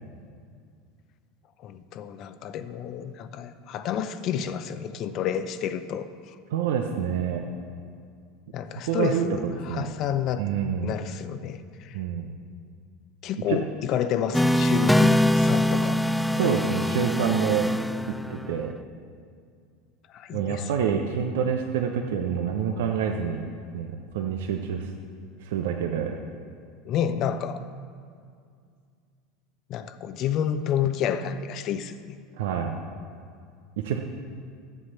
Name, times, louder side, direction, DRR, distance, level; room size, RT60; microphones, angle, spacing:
voice 1, 1.6-6.3 8.5-10.4 10.8-12.0 13.2-16.0 16.3-16.6 20.1-20.7 26.8-27.6 29.7-32.2, left 9 dB, 50° left, 12 dB, 0.7 m, -30 dB
voice 2, 6.5-7.4 8.9-9.9 10.4-10.9 11.9-12.3 13.5-13.6 16.3-17.7 18.1-18.7 20.3-23.4 23.7-24.9 25.4-26.2 32.4-32.7 33.8-34.0, right 8 dB, 70° right, 3 dB, 0.8 m, -27 dB
sound 1, 14.3-18.6, left 1 dB, 5° left, 0.4 m, -23 dB
11.5 x 7.9 x 5.7 m, 2.2 s
hypercardioid pair, 80°, 0 cm